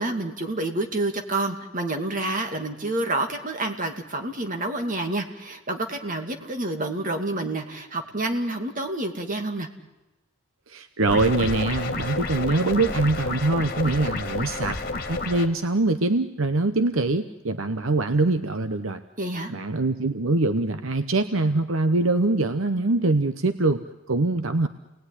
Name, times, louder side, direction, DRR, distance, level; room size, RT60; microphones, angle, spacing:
voice 1, 0.0-9.7 19.2-19.5, right 2 dB, 40° right, 5 dB, 2.4 m, -28 dB
voice 2, 10.7-14.8 15.1-19.0 19.5-24.7, right 2 dB, 70° right, 10 dB, 1.0 m, -23 dB
sound 1, 11.1-15.5, left 3 dB, 45° left, 2.1 m, -30 dB
29.0 x 19.5 x 9.9 m, 1.1 s
head